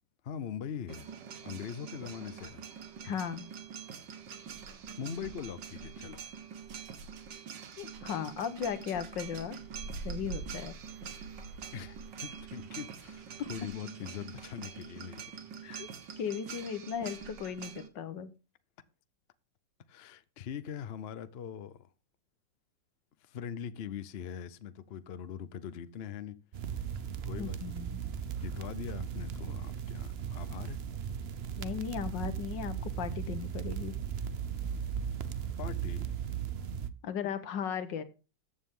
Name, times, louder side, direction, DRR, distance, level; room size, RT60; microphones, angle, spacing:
voice 1, 0.2-1.1 1.4-2.6 5.0-6.2 11.7-15.3 19.9-21.9 23.3-26.4 27.2-27.8 28.4-30.8 35.6-36.1, left 8 dB, 55° left, 0.6 m, -42 dB
sound 1, 0.9-17.9, right 6 dB, 75° right, 1.9 m, -44 dB
voice 2, 3.0-3.5 7.8-9.6 10.0-10.8 13.4-13.5 15.6-15.9 16.2-18.3 27.4-28.0 31.6-34.0 37.0-38.0, left 8 dB, 75° left, 1.9 m, -36 dB
sound 2, 26.5-36.9, right 8 dB, 60° right, 0.6 m, -37 dB
14.5 x 8.8 x 3.7 m
omnidirectional pair, 2.0 m